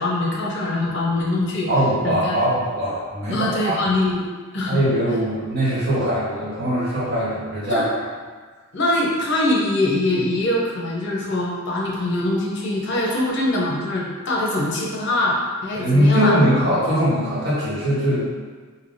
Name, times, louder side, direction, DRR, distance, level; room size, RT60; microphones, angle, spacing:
voice 1, 0.0-1.7 2.0-2.4 3.3-4.3 4.5-4.8 7.7-7.8 8.7-16.4, left 1 dB, 55° left, -4 dB, 0.6 m, -23 dB
voice 2, 1.7-3.8 4.7-8.0 15.7-18.2, equal, 45° right, -9 dB, 1.1 m, -21 dB
3.4 x 2.7 x 2.6 m, 1.4 s
head